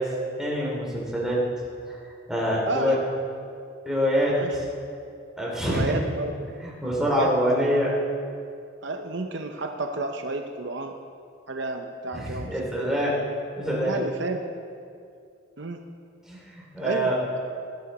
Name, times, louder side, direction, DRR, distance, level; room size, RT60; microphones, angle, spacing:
voice 1, 0.4-1.4 1.9-2.0 2.3-3.0 3.8-4.6 5.4-5.9 6.6-7.9 12.1-13.2 13.6-14.0 16.3-17.2, equal, 5° right, -5 dB, 3.0 m, -25 dB
voice 2, 2.7-3.0 4.3-4.5 5.6-6.5 7.1-7.7 8.8-11.0 11.5-13.0 13.8-14.4 15.6-15.8 16.8-17.4, right 2 dB, 60° right, 5 dB, 0.7 m, -31 dB
20.0 x 11.5 x 4.2 m, 2.4 s
head